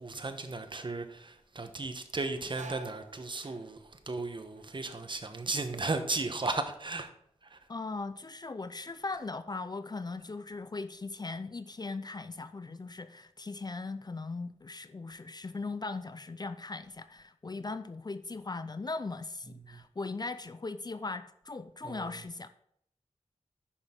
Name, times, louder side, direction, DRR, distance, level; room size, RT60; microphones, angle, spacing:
voice 1, 0.0-7.1 7.4-7.6 19.7-19.8 21.8-22.2, right 3 dB, 40° right, 1.0 m, -35 dB
sound 1, 2.2-7.4 7.6-8.3 8.7-11.7 12.0-12.1 13.1-13.3 13.7-14.8 15.3-15.5 16.1-16.7 17.0-18.2, right 6 dB, 90° right, 0.9 m, -55 dB
voice 2, 7.7-22.5, left 3 dB, 35° left, 0.5 m, -39 dB
9.9 x 6.2 x 3.7 m
wide cardioid pair, 75°, 12 cm